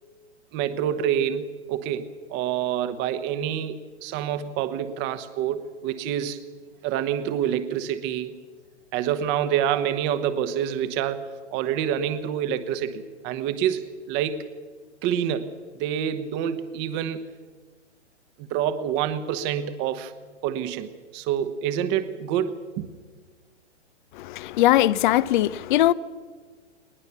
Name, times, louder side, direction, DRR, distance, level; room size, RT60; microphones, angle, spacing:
voice 1, 0.5-6.4 6.8-8.4 8.9-14.4 15.0-17.2 18.4-20.1 20.4-22.9, right 9 dB, 30° right, 1.1 m, -27 dB
voice 2, 24.1-25.9, left 14 dB, 45° left, 0.7 m, -20 dB
20.5 x 20.0 x 6.9 m
hypercardioid pair, 120°, 35 cm